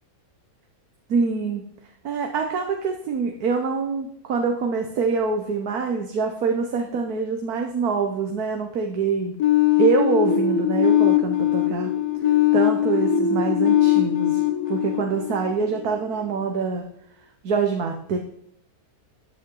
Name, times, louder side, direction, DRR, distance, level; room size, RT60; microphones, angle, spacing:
voice 1, 1.1-1.7 2.0-9.4 9.8-11.9 12.5-16.9 17.4-18.2, right 5 dB, 80° right, 3 dB, 1.6 m, -25 dB
sound 1, 9.4-16.2, left 10 dB, 85° left, 1.6 m, -21 dB
14.0 x 8.6 x 3.8 m, 0.72 s
omnidirectional pair, 1.6 m